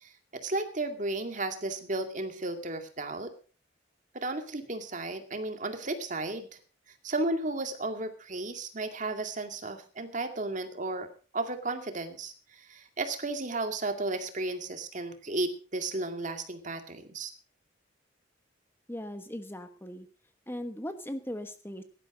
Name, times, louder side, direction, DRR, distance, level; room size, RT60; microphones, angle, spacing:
voice 1, 0.0-3.3 4.1-6.5 7.0-11.1 11.3-17.3, right 2 dB, 40° right, 7 dB, 2.3 m, -34 dB
voice 2, 18.9-20.1 20.5-21.8, left 1 dB, 10° left, 8 dB, 1.2 m, -38 dB
17.0 x 12.0 x 4.9 m, 0.40 s
head